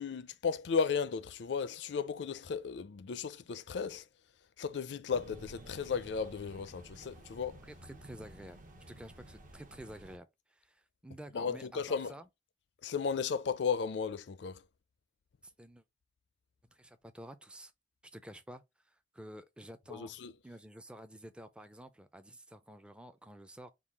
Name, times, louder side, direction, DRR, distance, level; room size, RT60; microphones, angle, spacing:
voice 1, 0.0-4.0 4.6-7.6 11.3-12.1 12.8-14.6 19.9-20.3, left 6 dB, 70° left, 0.4 m, -35 dB
sound 1, 5.1-10.2, right 1 dB, 45° right, 0.8 m, -53 dB
voice 2, 7.6-8.6 8.9-12.3 15.4-15.8 16.7-17.7 18.0-20.1 20.4-23.7, right 1 dB, 5° right, 0.4 m, -50 dB
3.7 x 2.3 x 4.5 m
head